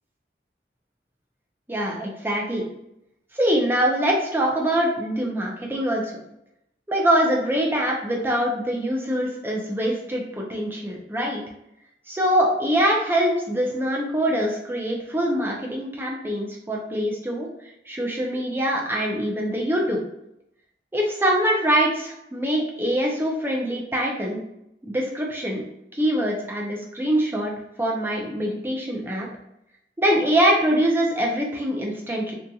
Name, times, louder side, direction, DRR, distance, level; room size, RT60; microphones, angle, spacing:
voice 1, 1.7-2.6 3.3-6.1 6.9-11.4 12.1-17.5 17.9-20.0 20.9-24.4 24.8-25.6 25.9-27.5 27.8-29.3 30.0-32.3, equal, 10° right, -1 dB, 0.4 m, -24 dB
2.7 x 2.5 x 2.3 m, 0.82 s
head